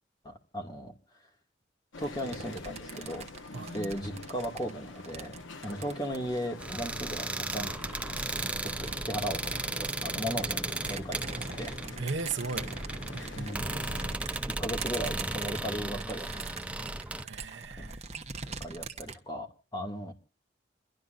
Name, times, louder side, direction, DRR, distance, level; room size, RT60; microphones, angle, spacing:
voice 1, 0.2-0.9 2.0-3.3 3.7-7.7 8.6-11.7 13.3-13.8 14.6-16.6 17.8-18.0 18.4-20.1, equal, 20° left, 2.3 m, -37 dB
sound 1, 1.9-14.2, left 3 dB, 90° left, 1.2 m, -46 dB
sound 2, 2.0-6.8 7.3-19.2, right 5 dB, 35° right, 1.2 m, -44 dB
sound 3, 6.6-17.2, right 2 dB, 5° right, 0.6 m, -35 dB
voice 2, 12.0-12.7 13.1-13.9 17.2-18.0, right 4 dB, 75° right, 0.9 m, -37 dB
30.0 x 12.0 x 2.6 m
head